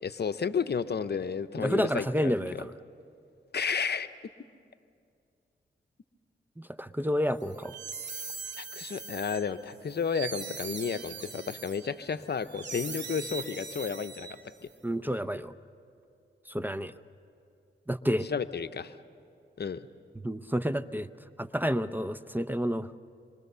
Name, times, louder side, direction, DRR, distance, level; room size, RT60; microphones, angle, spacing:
voice 1, 0.0-2.6 3.5-4.1 8.6-14.3 14.6-14.7 18.3-18.9 19.6-19.8, left 6 dB, 55° left, 11 dB, 0.8 m, -32 dB
voice 2, 1.6-2.7 6.6-7.8 14.8-15.5 16.5-16.9 17.9-18.3 20.2-21.1 21.4-22.9, equal, 10° right, 13 dB, 0.6 m, -30 dB
sound 1, 7.4-14.7, right 5 dB, 65° right, 2.0 m, -41 dB
26.5 x 23.0 x 6.8 m, 2.4 s
cardioid pair, 60°, 20 cm